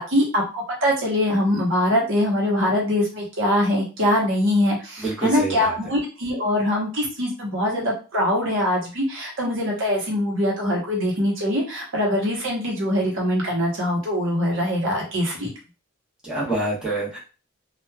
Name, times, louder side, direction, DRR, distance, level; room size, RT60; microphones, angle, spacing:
voice 1, 0.0-15.5, left 1 dB, 60° right, -2 dB, 0.9 m, -23 dB
voice 2, 5.0-5.8 16.2-17.2, right 2 dB, 5° right, -8 dB, 1.0 m, -26 dB
3.0 x 2.3 x 2.2 m, 0.33 s
head